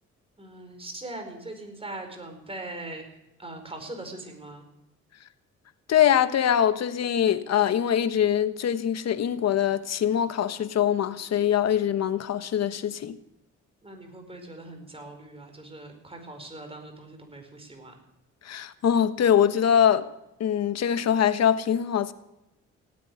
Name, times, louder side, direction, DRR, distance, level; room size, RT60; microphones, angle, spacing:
voice 1, 0.4-3.0 3.4-4.6 13.8-17.9, right 2 dB, 20° right, 4.8 m, -41 dB
voice 2, 5.9-13.2 18.4-20.1 20.4-22.1, left 9 dB, 60° left, 1.2 m, -23 dB
17.5 x 8.5 x 9.6 m
cardioid pair, 90°, 30 cm